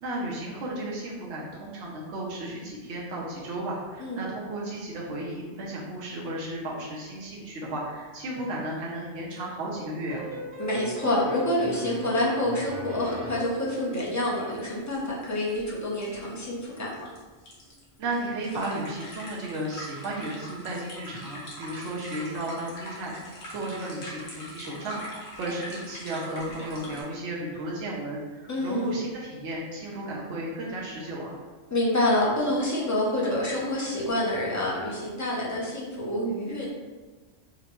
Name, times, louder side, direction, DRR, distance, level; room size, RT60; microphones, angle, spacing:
voice 1, 0.0-10.3 18.0-23.1 23.5-25.0 25.4-31.4, right 1 dB, 70° right, -4 dB, 1.0 m, -34 dB
voice 2, 4.0-4.3 10.6-17.1 28.5-29.0 31.7-36.7, left 1 dB, 20° left, -5 dB, 0.6 m, -27 dB
sound 1, 10.1-13.7, right 1 dB, 50° right, 0.9 m, -38 dB
sound 2, 13.9-14.0 14.3-27.0, equal, 65° left, 1.2 m, -43 dB
4.9 x 2.2 x 3.0 m, 1.4 s
omnidirectional pair, 1.2 m